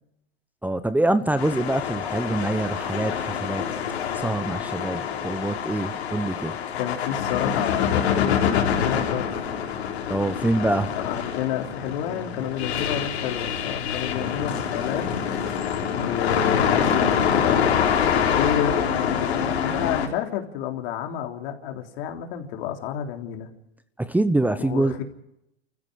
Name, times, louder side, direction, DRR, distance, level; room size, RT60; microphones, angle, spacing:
voice 1, 0.6-3.6 4.1-6.6 10.1-10.9 24.0-25.0, right 2 dB, 5° right, 12 dB, 0.9 m, -25 dB
sound 1, 1.4-20.1, left 7 dB, 85° left, 4.3 m, -25 dB
voice 2, 6.8-9.4 10.9-15.1 15.9-17.6 18.4-23.5 24.6-25.0, left 10 dB, 65° left, 4 dB, 3.6 m, -30 dB
29.0 x 15.0 x 6.4 m, 0.83 s
hypercardioid pair, 110°, 31 cm